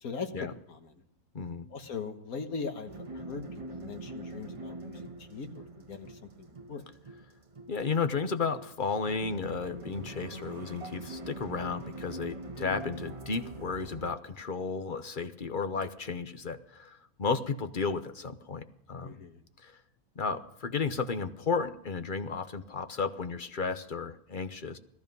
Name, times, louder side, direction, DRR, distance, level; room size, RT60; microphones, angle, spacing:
voice 1, 0.0-0.9 1.7-3.4 3.7-6.1 6.4-6.8 19.0-19.4, left 5 dB, 85° left, 6 dB, 1.9 m, -40 dB
voice 2, 1.3-1.7 7.7-19.2 19.6-19.7 20.2-24.8, left 5 dB, 40° left, 9 dB, 0.9 m, -33 dB
sound 1, 2.9-14.2, right 2 dB, 30° right, 0.7 m, -43 dB
18.5 x 13.0 x 5.4 m, 0.77 s
omnidirectional pair, 1.5 m